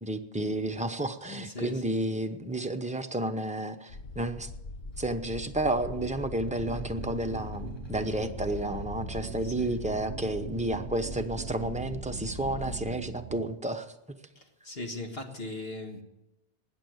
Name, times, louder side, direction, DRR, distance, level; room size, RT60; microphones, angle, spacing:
voice 1, 0.0-4.5 5.0-13.9, right 1 dB, 5° right, 6 dB, 0.8 m, -31 dB
voice 2, 1.4-2.0 9.4-9.7 14.4-16.0, left 2 dB, 65° left, 3 dB, 1.9 m, -39 dB
sound 1, 3.9-12.9, left 2 dB, 50° left, 0.9 m, -42 dB
sound 2, 6.1-10.3 11.1-11.8 12.1-13.1, left 3 dB, 25° left, 1.1 m, -47 dB
sound 3, 6.7-13.5, right 10 dB, 70° right, 0.9 m, -42 dB
19.5 x 7.0 x 8.0 m, 0.96 s
omnidirectional pair, 1.1 m